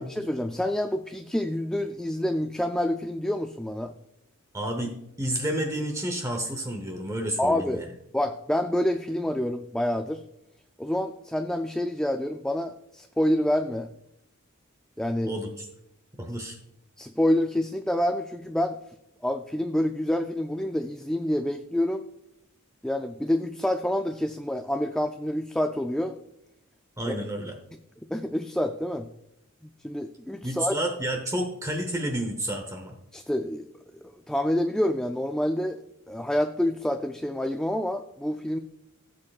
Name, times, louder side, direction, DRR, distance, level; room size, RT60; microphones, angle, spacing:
voice 1, 0.0-3.9 7.4-7.8 8.1-10.2 10.8-13.9 15.0-15.3 17.0-18.8 19.2-22.0 22.8-26.2 27.1-27.2 28.1-29.1 29.8-30.8 33.1-33.7 34.0-35.8 36.1-38.6, left 1 dB, 5° left, 6 dB, 0.3 m, -27 dB
voice 2, 4.5-7.9 15.2-15.7 16.2-16.6 27.0-27.5 30.4-33.0, right 1 dB, 15° right, 3 dB, 0.9 m, -30 dB
15.0 x 7.6 x 2.4 m, 0.82 s
head